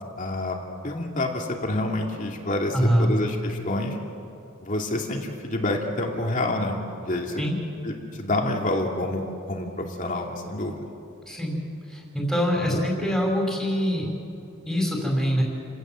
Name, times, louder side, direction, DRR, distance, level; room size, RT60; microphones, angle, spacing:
voice 1, 0.2-0.6 0.8-4.0 4.6-6.8 7.0-7.4 7.8-9.2 9.5-10.8 12.6-12.8, left 1 dB, 40° left, 1 dB, 2.5 m, -28 dB
voice 2, 2.7-3.1 7.4-7.5 11.3-11.6 11.9-14.1 14.7-15.4, equal, ahead, -2 dB, 5.4 m, -24 dB
30.0 x 17.5 x 7.6 m, 2.8 s
head